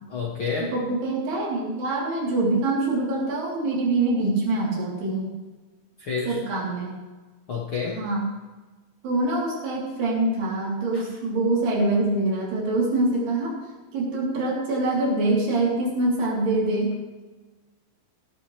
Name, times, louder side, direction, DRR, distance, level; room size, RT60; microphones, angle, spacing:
voice 1, 0.0-0.7 6.0-6.4 7.5-8.0 10.9-11.0, left 5 dB, 60° left, -3 dB, 1.4 m, -29 dB
voice 2, 0.6-5.3 6.3-6.9 7.9-8.3 9.0-13.5 13.9-17.0, right 2 dB, 85° right, -4 dB, 5.6 m, -24 dB
16.5 x 14.0 x 3.3 m, 1.2 s
omnidirectional pair, 4.5 m